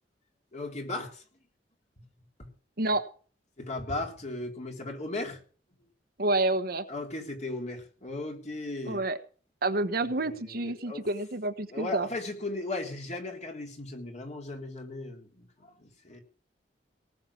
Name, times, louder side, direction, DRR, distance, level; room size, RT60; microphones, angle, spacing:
voice 1, 0.5-1.2 3.6-5.4 6.9-9.0 10.2-11.1 11.7-16.2, left 2 dB, 40° left, 2 dB, 3.5 m, -37 dB
voice 2, 6.2-6.8 8.9-9.2 9.6-12.1, right 2 dB, 60° right, 9 dB, 1.3 m, -28 dB
18.5 x 6.8 x 7.1 m, 0.41 s
head